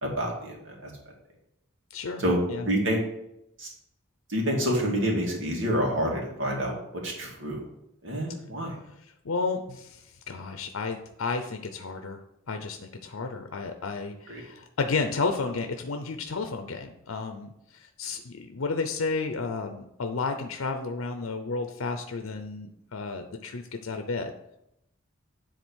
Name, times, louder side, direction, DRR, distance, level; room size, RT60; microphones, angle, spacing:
voice 1, 0.0-0.9 2.2-2.4 2.6-3.0 3.6-3.7 4.3-6.7 7.0-7.6 8.0-8.8 14.3-14.4, equal, 65° right, -1 dB, 2.4 m, -27 dB
voice 2, 1.9-2.2 2.5-2.7 9.2-12.2 12.5-24.3, left 4 dB, 90° left, 6 dB, 0.7 m, -32 dB
9.9 x 3.9 x 6.3 m, 0.82 s
head